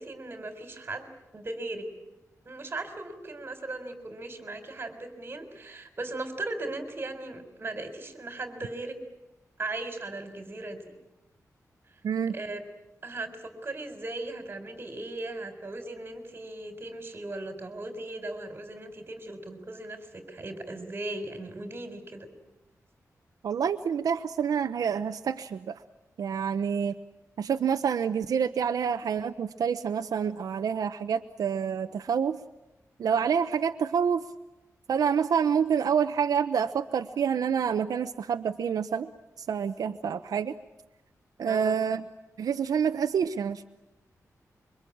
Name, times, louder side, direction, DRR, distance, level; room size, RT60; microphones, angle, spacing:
voice 1, 0.0-1.9 2.5-9.0 9.6-10.8 12.3-12.6 13.0-22.3 41.5-41.8, right 2 dB, 35° right, 7 dB, 4.2 m, -38 dB
voice 2, 23.4-25.8 26.2-27.0 27.4-32.4 33.0-34.2 34.9-39.1 39.4-40.5 41.4-42.0 42.4-43.6, right 7 dB, 85° right, 8 dB, 0.9 m, -27 dB
26.5 x 24.0 x 8.7 m, 0.97 s
wide cardioid pair, 130°, 6 cm